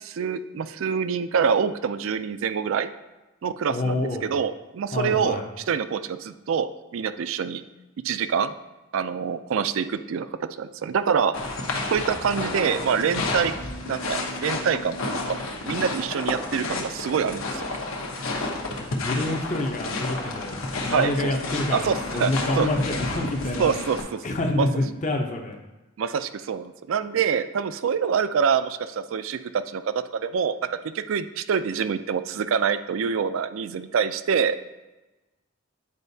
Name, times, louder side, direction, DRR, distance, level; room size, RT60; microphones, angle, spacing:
voice 1, 0.0-2.9 3.4-5.4 5.7-7.6 8.0-8.5 8.9-11.3 11.9-13.5 13.9-15.4 15.7-17.8 20.9-21.1 21.7-22.7 23.6-24.2 24.6-24.7 26.0-34.6, right 6 dB, 70° right, 12 dB, 0.4 m, -26 dB
voice 2, 3.7-4.3 4.9-5.4 18.8-20.6 20.8-23.8 24.2-25.6, left 2 dB, 35° left, 2 dB, 0.6 m, -27 dB
sound 1, 11.3-24.0, left 2 dB, 75° left, 1.0 m, -31 dB
9.6 x 4.5 x 2.7 m, 1.1 s
head